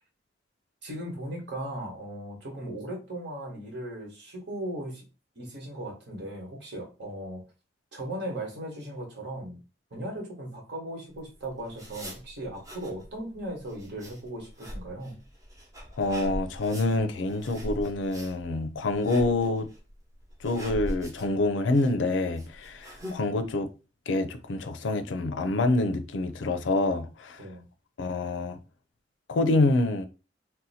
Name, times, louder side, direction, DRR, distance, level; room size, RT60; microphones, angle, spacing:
voice 1, 0.8-5.0 5.3-7.4 7.9-9.6 9.9-15.2 27.4-27.6, right 1 dB, 65° right, 1.3 m, -37 dB
sound 1, 11.1-23.2, equal, 20° right, 0.8 m, -41 dB
voice 2, 16.0-19.7 20.4-23.7 24.1-27.4 28.0-28.6 29.3-30.1, left 2 dB, 80° left, 0.5 m, -26 dB
2.7 x 2.2 x 4.1 m
head